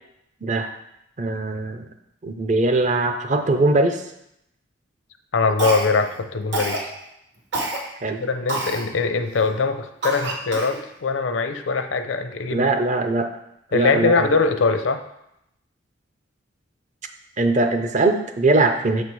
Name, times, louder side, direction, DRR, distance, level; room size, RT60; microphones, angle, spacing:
voice 1, 0.4-0.7 1.2-1.8 2.2-4.0 8.0-8.2 12.5-13.3 13.7-14.3 17.4-19.0, right 2 dB, 40° right, 7 dB, 0.6 m, -21 dB
voice 2, 5.3-6.9 8.2-12.7 13.7-15.0, left 4 dB, 75° left, 8 dB, 0.6 m, -22 dB
Cough, 5.6-6.1 6.5-6.9 7.5-7.8 8.5-8.8 9.4-9.5 10.0-10.8, right 2 dB, 65° right, 1.3 m, -27 dB
6.8 x 4.3 x 4.7 m, 0.80 s
head